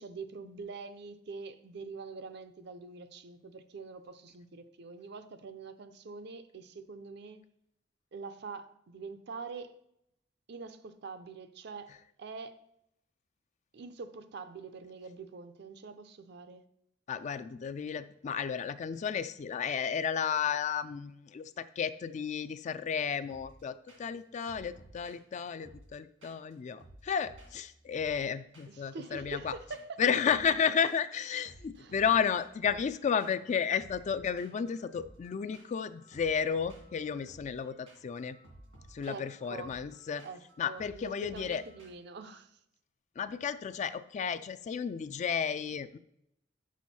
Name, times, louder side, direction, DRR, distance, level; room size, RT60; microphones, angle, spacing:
voice 1, 0.0-7.4 8.1-9.8 10.5-12.6 13.7-16.6 28.7-30.0 31.8-31.9 39.1-39.8 40.2-40.4 40.7-42.6, right 4 dB, 60° right, 10 dB, 0.5 m, -45 dB
voice 2, 17.1-29.5 30.0-38.4 38.9-40.2 40.6-41.6 43.2-46.0, left 7 dB, 40° left, 13 dB, 0.3 m, -32 dB
sound 1, 23.3-23.6 23.9-24.2 24.5-26.5 26.8-28.3 28.5-28.9 29.1-31.2 31.4-41.9, right 1 dB, 90° right, 2.3 m, -56 dB
6.3 x 6.0 x 4.2 m, 0.76 s
head